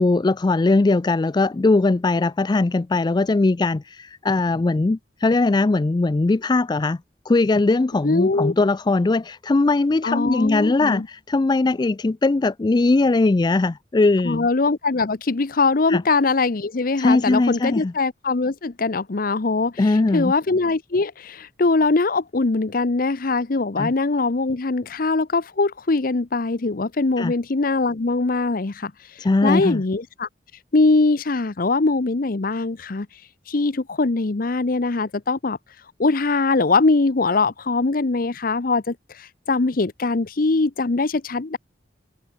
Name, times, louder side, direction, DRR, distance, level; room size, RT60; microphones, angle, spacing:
voice 1, 0.0-7.0 7.3-14.5 15.9-16.0 17.0-17.9 19.8-20.3 23.8-23.9 27.2-27.3 29.2-29.8, left 3 dB, 25° left, 0.4 m, -20 dB
voice 2, 8.0-8.5 10.0-11.1 14.2-28.9 29.4-30.3 30.7-33.1 33.5-35.6 36.0-41.6, left 3 dB, 55° left, 0.8 m, -22 dB
head